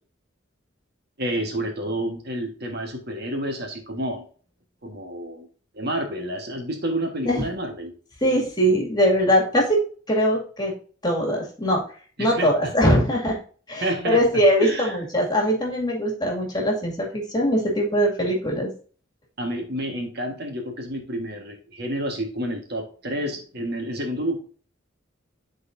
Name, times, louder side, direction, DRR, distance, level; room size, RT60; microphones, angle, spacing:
voice 1, 1.2-4.2 4.8-5.5 5.7-7.9 12.2-12.7 13.8-14.9 19.4-24.4, right 1 dB, 55° right, 2 dB, 1.5 m, -29 dB
voice 2, 8.2-10.7 11.0-11.8 12.2-13.4 13.7-18.7, equal, 20° left, -1 dB, 2.2 m, -21 dB
12.0 x 4.1 x 2.6 m, 0.42 s
head